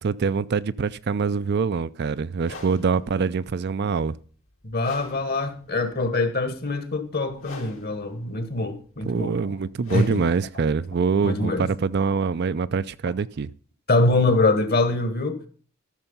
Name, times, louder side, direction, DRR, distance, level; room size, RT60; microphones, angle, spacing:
voice 1, 0.0-4.1 9.1-13.5, right 5 dB, 55° right, 0.4 m, -24 dB
sound 1, 2.3-12.2, left 3 dB, 85° left, 3.6 m, -45 dB
voice 2, 4.6-9.6 9.9-10.3 11.2-11.7 13.9-15.5, left 2 dB, 50° left, 1.5 m, -24 dB
13.5 x 6.7 x 5.5 m
head